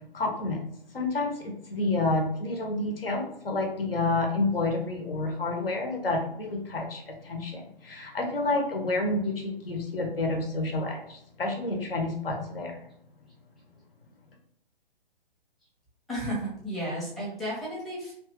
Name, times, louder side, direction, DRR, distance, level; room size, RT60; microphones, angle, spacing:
voice 1, 0.1-0.6 0.9-12.8, left 2 dB, 70° left, 2 dB, 1.0 m, -29 dB
voice 2, 16.1-18.1, right 1 dB, ahead, -7 dB, 0.6 m, -33 dB
2.9 x 2.4 x 2.9 m, 0.71 s
figure-of-eight pair, 130°, 30 cm